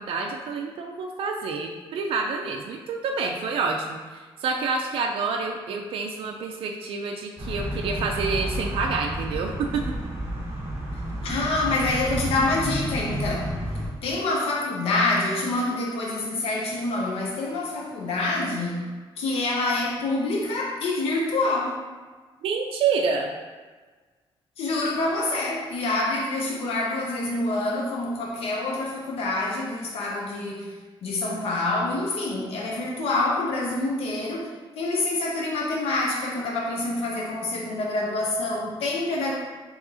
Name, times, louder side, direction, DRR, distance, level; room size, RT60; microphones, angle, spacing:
voice 1, 0.0-9.8 22.4-23.3, right 4 dB, 70° right, 2 dB, 0.4 m, -28 dB
sound 1, 7.4-13.9, equal, 30° right, 0.9 m, -31 dB
voice 2, 11.2-13.6 14.0-18.8 19.2-21.8 24.6-30.8 31.0-34.5 34.8-39.4, left 2 dB, 85° left, -2 dB, 0.6 m, -26 dB
4.7 x 3.5 x 2.7 m, 1.4 s
wide cardioid pair, 170°, 10 cm